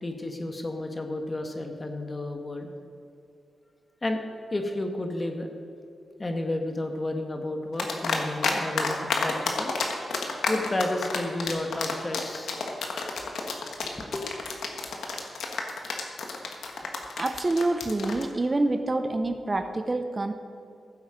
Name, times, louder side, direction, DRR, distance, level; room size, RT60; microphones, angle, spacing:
voice 1, 0.0-2.7 4.0-4.2 4.5-5.5 6.2-9.7 10.5-12.5 13.2-13.3 13.9-14.3, left 2 dB, 30° left, 4 dB, 1.5 m, -32 dB
sound 1, 7.8-8.5 8.8-18.2, left 5 dB, 90° left, 1.4 m, -29 dB
voice 2, 17.2-20.3, right 2 dB, 35° right, 8 dB, 0.8 m, -27 dB
15.0 x 7.8 x 5.2 m, 2.8 s
cardioid pair, 70°, 0 cm